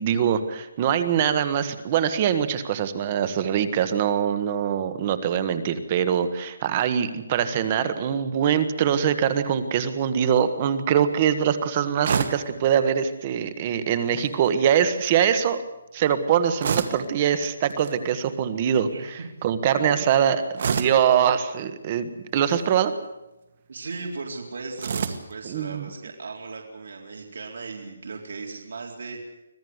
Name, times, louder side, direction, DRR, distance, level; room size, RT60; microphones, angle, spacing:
voice 1, 0.0-15.6 15.9-22.9 25.4-25.9, right 8 dB, 25° right, 11 dB, 1.5 m, -23 dB
sound 1, 12.0-12.5 14.2-14.5 16.6-17.1 17.7-18.0 20.6-21.1 22.4-22.8 24.8-25.3, right 6 dB, 45° right, 2.0 m, -27 dB
voice 2, 18.9-19.3 19.7-19.8 20.1-20.3 23.7-29.2, right 4 dB, 60° right, 1 dB, 4.0 m, -37 dB
25.5 x 16.5 x 8.1 m, 0.96 s
hypercardioid pair, 170°, 0 cm